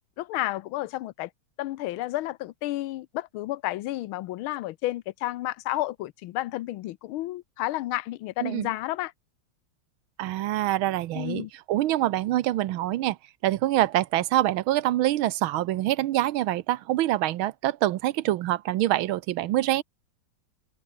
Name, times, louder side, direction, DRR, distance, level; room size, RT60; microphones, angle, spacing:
voice 1, 0.2-1.3 1.6-9.1 11.1-11.5, left 16 dB, 80° left, 1.5 m, -31 dB
voice 2, 10.2-13.2 13.4-19.8, right 14 dB, 80° right, 1.5 m, -25 dB
omnidirectional pair, 2.3 m